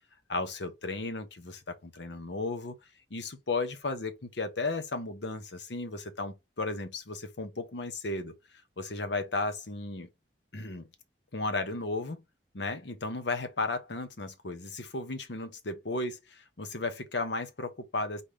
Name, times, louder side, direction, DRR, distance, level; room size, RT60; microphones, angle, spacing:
voice 1, 0.3-2.7 3.1-8.3 8.8-10.1 10.5-10.9 11.3-12.2 12.5-18.2, left 3 dB, 75° left, 1.0 m, -34 dB
4.1 x 3.4 x 3.6 m
head